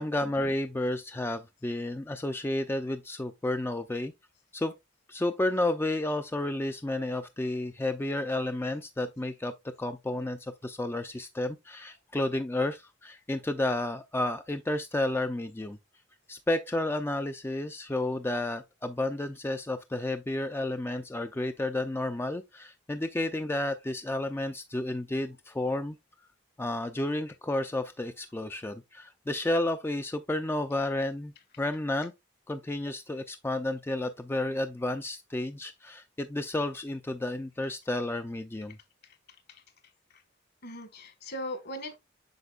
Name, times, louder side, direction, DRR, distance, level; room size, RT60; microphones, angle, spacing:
voice 1, 0.0-4.1 4.5-4.7 5.1-15.8 16.3-26.0 26.6-32.1 32.5-38.8, left 1 dB, 10° left, 0.4 m, -31 dB
voice 2, 40.6-42.0, left 1 dB, 55° left, 1.7 m, -39 dB
7.9 x 5.8 x 2.4 m
head